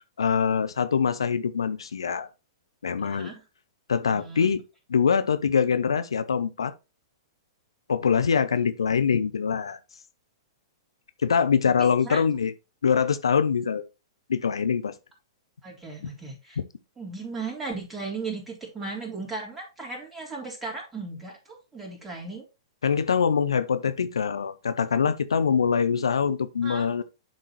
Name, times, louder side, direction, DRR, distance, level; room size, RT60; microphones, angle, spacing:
voice 1, 0.2-2.3 2.8-3.3 3.9-4.6 4.9-6.7 7.9-9.8 11.2-12.5 12.8-13.8 14.3-14.9 22.8-27.0, left 6 dB, 80° left, 0.7 m, -24 dB
voice 2, 3.0-3.4 4.1-4.5 11.7-12.2 15.6-16.6 17.0-22.4 26.6-26.8, right 3 dB, 10° right, 3.4 m, -36 dB
10.5 x 4.0 x 3.1 m
hypercardioid pair, 110°, 3 cm